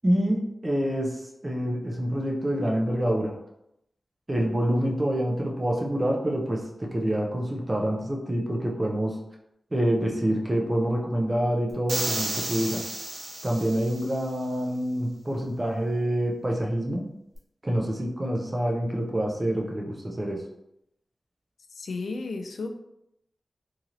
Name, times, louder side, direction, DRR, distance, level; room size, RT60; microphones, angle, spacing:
voice 1, 0.0-3.4 4.3-9.2 9.7-12.9 13.4-17.1 17.6-20.5, equal, 25° right, -1 dB, 0.4 m, -27 dB
sound 1, 11.9-14.2, right 2 dB, 85° right, 0.7 m, -32 dB
voice 2, 21.7-22.8, left 3 dB, 85° left, 5 dB, 0.3 m, -33 dB
3.0 x 2.8 x 2.5 m, 0.80 s
wide cardioid pair, 120°, 0 cm